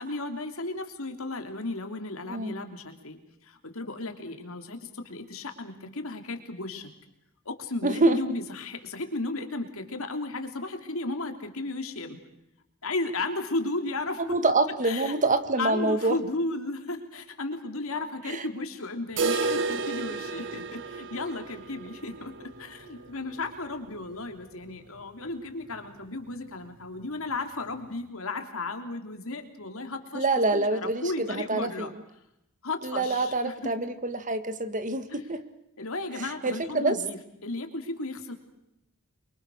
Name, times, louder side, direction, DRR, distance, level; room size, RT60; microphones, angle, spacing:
voice 1, 0.0-3.2 3.4-6.9 7.4-12.2 12.8-14.2 14.8-15.2 15.6-30.3 30.5-31.9 32.6-33.7 35.1-35.2 35.8-38.3, left 2 dB, 65° left, 6 dB, 3.3 m, -34 dB
voice 2, 7.8-8.2 14.2-16.2 18.3-18.4 30.1-31.9 32.8-35.4 36.2-37.0, right 2 dB, 35° right, 11 dB, 1.8 m, -26 dB
sound 1, 19.2-25.0 25.3-25.4 25.7-25.8 26.3-26.4 27.3-27.4, right 3 dB, 60° right, 1.4 m, -33 dB
28.5 x 24.0 x 6.4 m, 0.85 s
head